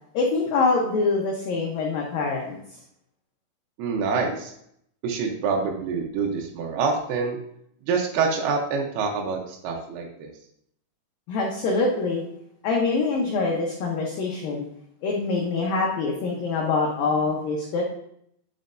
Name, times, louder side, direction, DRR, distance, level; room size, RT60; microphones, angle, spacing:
voice 1, 0.1-2.6 11.3-12.2 12.6-14.7 15.0-17.8, left 3 dB, 90° left, -1 dB, 1.9 m, -24 dB
voice 2, 3.8-4.5 5.0-7.4 7.9-10.3, right 4 dB, 80° right, 0 dB, 2.3 m, -26 dB
11.0 x 5.3 x 2.6 m, 0.71 s
omnidirectional pair, 5.4 m